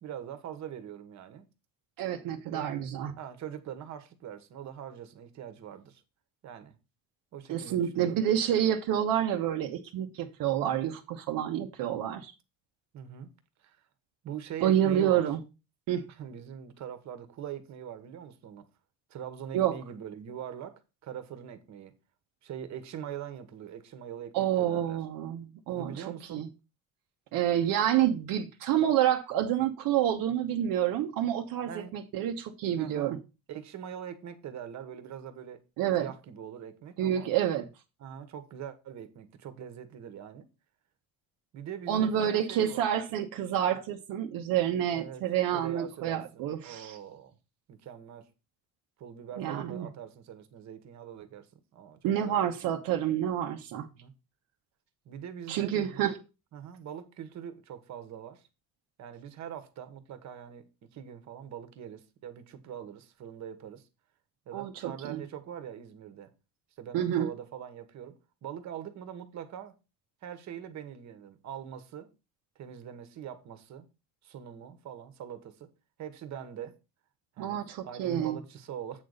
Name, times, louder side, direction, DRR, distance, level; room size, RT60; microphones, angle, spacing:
voice 1, 0.0-1.5 2.5-2.7 3.2-6.0 6.4-6.8 7.3-8.2 12.9-13.3 13.6-13.8 14.2-15.2 16.1-18.7 19.1-21.9 22.4-25.0 25.7-26.4 31.7-31.9 32.8-33.1 33.5-35.6 36.0-37.3 38.0-40.5 41.5-43.0 44.9-45.2 45.5-47.4 47.7-48.3 49.0-52.5 53.8-54.1 55.0-56.1 56.5-58.5 59.0-63.8 64.5-66.3 66.8-69.8 70.2-72.1 72.6-73.9 74.2-75.7 76.0-76.8 77.4-79.0, right 9 dB, 55° right, 1.4 m, -43 dB
voice 2, 2.0-3.1 7.5-12.3 14.6-15.4 15.9-16.0 19.5-19.8 24.3-26.0 26.3-26.5 27.3-33.2 35.8-36.1 37.0-37.6 41.9-47.0 49.4-49.9 52.0-53.9 55.5-56.2 64.5-65.2 66.9-67.3 77.4-78.4, right 10 dB, 75° right, 1.1 m, -28 dB
8.3 x 4.0 x 6.5 m
cardioid pair, 140°, 34 cm